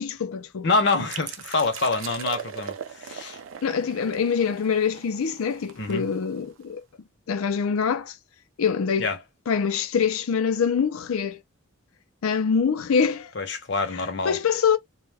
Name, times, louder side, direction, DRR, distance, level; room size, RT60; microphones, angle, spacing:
voice 1, 0.0-0.7 3.6-6.8 7.3-8.1 8.6-9.1 9.5-11.4 12.2-13.3 14.3-14.8, left 6 dB, 90° left, 0.5 m, -24 dB
voice 2, 0.6-3.4 5.8-6.1 9.0-9.2 13.3-14.4, left 3 dB, 55° left, 0.7 m, -26 dB
sound 1, 1.1-6.6, right 7 dB, 70° right, 0.4 m, -40 dB
2.2 x 2.1 x 3.3 m
head